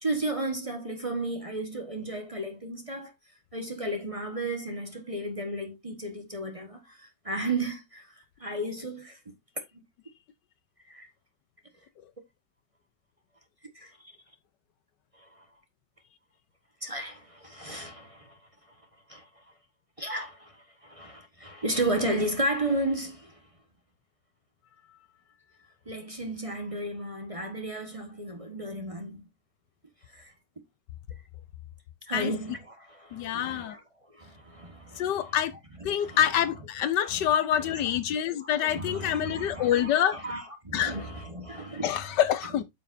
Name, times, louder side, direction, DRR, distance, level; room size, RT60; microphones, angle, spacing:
voice 1, 0.0-3.1 3.5-9.2 9.7-9.8 10.9-11.1 13.7-13.9 15.2-15.4 16.8-18.4 19.1-19.3 20.0-23.4 25.8-29.2 30.1-30.3 32.1-33.8 34.1-35.4 35.8-36.5 37.0-38.0 38.3-42.2, right 1 dB, 20° right, 1.3 m, -34 dB
voice 2, 33.1-33.8 35.0-35.5 35.8-40.2 40.7-40.9 41.8-42.6, left 10 dB, 75° left, 1.3 m, -26 dB
8.3 x 7.0 x 2.6 m
omnidirectional pair, 1.9 m